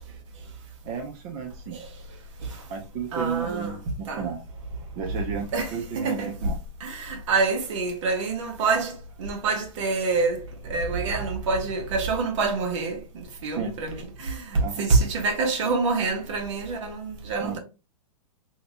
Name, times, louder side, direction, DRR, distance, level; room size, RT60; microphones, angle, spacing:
voice 1, 0.8-1.8 2.7-4.4 5.0-6.6 13.5-13.7 14.6-14.8 17.4-17.6, right 6 dB, 30° right, 0.6 m, -33 dB
voice 2, 3.1-3.8 4.1-4.3 5.5-6.3 6.8-17.6, right 4 dB, 55° right, 1.1 m, -26 dB
3.2 x 2.8 x 2.9 m
hypercardioid pair, 140°, 19 cm